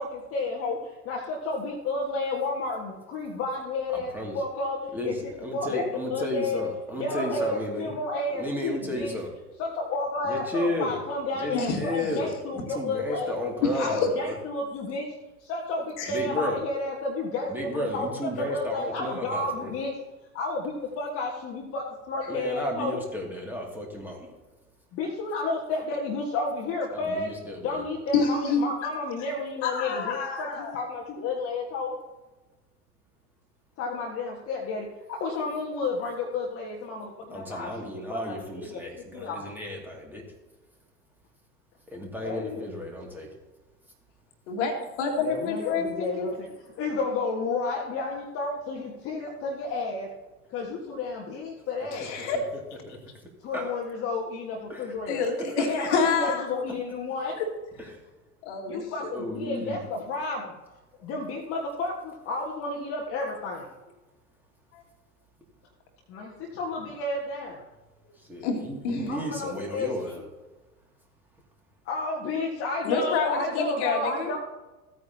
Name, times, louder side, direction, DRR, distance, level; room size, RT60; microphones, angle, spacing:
voice 1, 0.0-6.6 7.0-9.1 9.6-13.4 13.8-15.1 15.4-19.9 20.3-23.0 24.9-27.3 27.6-31.9 33.8-37.7 38.1-39.5 42.2-42.7 45.2-50.1 50.5-52.1 53.4-55.2 55.7-57.4 58.7-60.5 61.0-63.7 66.1-67.6 69.1-70.2 71.8-74.4, left 3 dB, 30° left, -1 dB, 1.7 m, -31 dB
voice 2, 3.9-4.4 4.9-7.9 8.3-9.3 10.3-11.0 11.4-14.4 16.1-16.6 17.5-19.7 22.3-24.3 26.9-27.8 37.3-40.2 41.9-43.3 52.9-53.0 53.5-53.7 54.7-54.9 55.8-55.9 59.1-59.8 68.3-70.2, left 1 dB, 5° right, -2 dB, 2.3 m, -33 dB
voice 3, 13.6-14.1 16.0-16.1 28.1-28.7 29.6-30.8 44.5-46.3 51.9-52.4 55.1-56.5 57.4-57.5 58.4-59.1 64.7-64.8 68.4-69.1 72.8-74.3, left 5 dB, 50° left, 3 dB, 2.1 m, -28 dB
15.5 x 9.2 x 2.8 m, 1.1 s
figure-of-eight pair, 95°, 46 cm